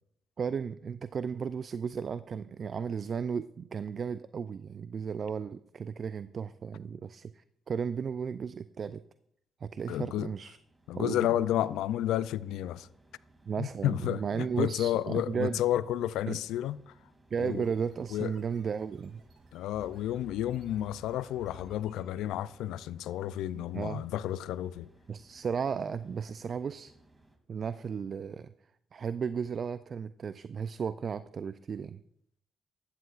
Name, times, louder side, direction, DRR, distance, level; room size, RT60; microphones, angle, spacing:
voice 1, 0.4-9.0 9.6-10.6 10.9-11.2 13.5-15.6 16.3-16.4 17.3-19.2 23.5-24.0 25.1-26.9 27.5-28.5 28.9-32.0, right 6 dB, 50° right, 0.4 m, -34 dB
voice 2, 9.9-10.3 10.9-12.9 13.6-16.9 17.4-17.7 18.1-18.3 19.5-24.9, left 12 dB, 80° left, 0.4 m, -31 dB
sound 1, 10.4-27.4, right 2 dB, 20° right, 2.6 m, -62 dB
sound 2, 17.3-22.5, right 3 dB, 70° right, 2.9 m, -63 dB
sound 3, 19.7-22.7, left 3 dB, 30° left, 0.8 m, -54 dB
13.5 x 13.0 x 2.5 m
supercardioid pair, 60°, 0 cm